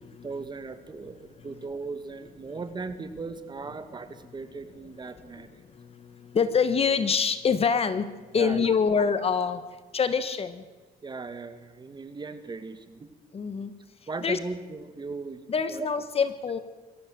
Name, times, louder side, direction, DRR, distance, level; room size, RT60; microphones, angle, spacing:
voice 1, 0.2-5.6 8.3-8.8 11.0-13.1 14.1-15.4 15.7-15.9, right 4 dB, 25° right, 10 dB, 2.0 m, -38 dB
voice 2, 6.3-9.6 9.9-10.6 13.3-13.7 14.2-14.4 15.5-16.6, left 6 dB, 35° left, 12 dB, 1.4 m, -25 dB
22.5 x 15.5 x 7.7 m, 1.3 s
cardioid pair, 110°, 17 cm